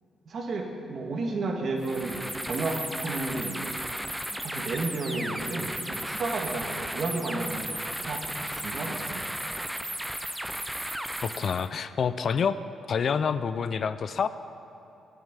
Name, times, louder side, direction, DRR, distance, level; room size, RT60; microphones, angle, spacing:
voice 1, 0.3-3.8 4.4-7.8 8.1-9.3, right 3 dB, 60° right, 2 dB, 1.6 m, -32 dB
sound 1, 1.8-11.7, right 1 dB, 5° right, 0.6 m, -35 dB
voice 2, 11.2-12.6 12.9-14.3, left 6 dB, 60° left, 13 dB, 0.4 m, -27 dB
8.7 x 7.3 x 8.1 m, 2.9 s
supercardioid pair, 65°, 0 cm